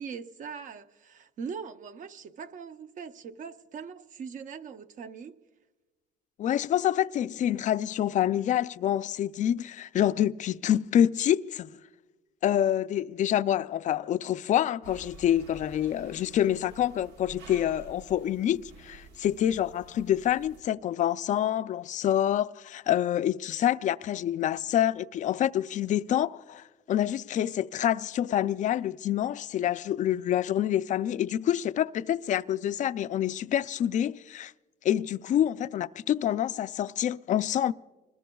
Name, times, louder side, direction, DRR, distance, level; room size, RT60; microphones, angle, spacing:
voice 1, 0.0-5.4, right 6 dB, 50° right, 0.8 m, -41 dB
voice 2, 6.4-11.7 12.4-34.5 34.8-37.7, left 11 dB, 45° left, 0.4 m, -27 dB
sound 1, 14.8-20.6, right 4 dB, 80° right, 1.3 m, -50 dB
26.0 x 20.5 x 2.3 m
cardioid pair, 110°, 17 cm